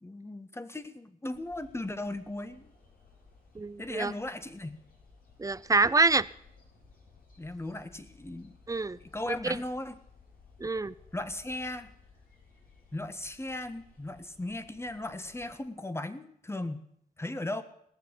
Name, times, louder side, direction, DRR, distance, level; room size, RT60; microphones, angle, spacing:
voice 1, 0.0-2.7 3.8-4.8 7.4-8.6 9.0-9.9 11.1-11.9 12.9-16.8 17.2-17.6, left 2 dB, 15° left, 11 dB, 1.5 m, -37 dB
sound 1, 1.3-15.5, left 4 dB, 70° left, 5.0 m, -59 dB
voice 2, 3.6-4.1 5.4-6.2 8.7-9.0 10.6-10.9, right 3 dB, 20° right, 17 dB, 0.6 m, -26 dB
19.0 x 7.0 x 9.9 m, 0.69 s
cardioid pair, 65°, 15 cm